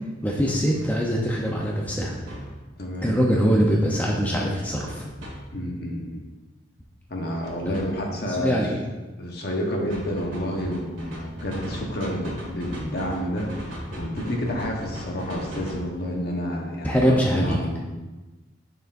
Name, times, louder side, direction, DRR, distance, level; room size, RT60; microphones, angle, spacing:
voice 1, 0.2-2.2 3.0-5.1 7.7-7.8 8.4-8.7 16.8-17.6, equal, 10° left, -3 dB, 0.6 m, -22 dB
sound 1, 0.7-0.8 2.3-2.5 4.9-5.3 7.4-7.9 9.9-15.9, equal, 75° right, 1.8 m, -37 dB
voice 2, 2.8-3.1 5.5-6.2 7.1-8.7 9.2-17.8, equal, 55° left, 0 dB, 1.1 m, -30 dB
6.7 x 6.6 x 2.6 m, 1.2 s
head